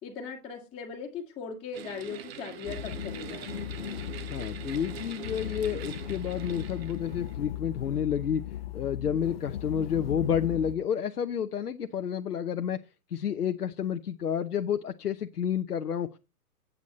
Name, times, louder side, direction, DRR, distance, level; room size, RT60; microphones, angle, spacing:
voice 1, 0.0-3.6, left 5 dB, 15° left, -6 dB, 1.9 m, -39 dB
sound 1, 1.7-7.3, right 9 dB, 40° right, 1.0 m, -43 dB
sound 2, 2.7-10.8, left 12 dB, 40° left, 0.6 m, -38 dB
voice 2, 4.3-8.4 8.7-12.8 13.1-16.2, left 8 dB, 85° left, 6 dB, 0.9 m, -30 dB
10.0 x 8.3 x 4.1 m, 0.28 s
hypercardioid pair, 135°, 46 cm